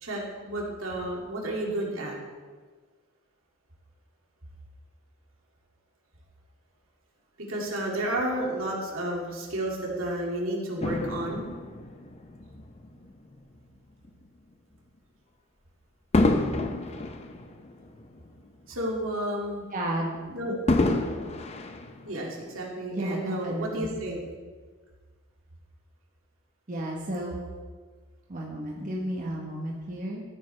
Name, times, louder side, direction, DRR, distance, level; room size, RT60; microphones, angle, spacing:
voice 1, 0.0-2.1 7.4-11.5 18.7-19.7 20.3-20.5 22.0-24.2, right 1 dB, 75° right, -2 dB, 2.3 m, -31 dB
Fireworks, 10.8-13.4 14.0-14.3 16.1-18.6 19.0-19.1 20.7-22.6 23.3-23.4, left 2 dB, 30° left, 0.6 m, -28 dB
voice 2, 19.7-20.2 20.5-20.6 22.9-23.9 26.7-27.4 28.3-30.2, right 1 dB, 40° right, -2 dB, 1.1 m, -32 dB
13.5 x 9.2 x 3.3 m, 1.5 s
head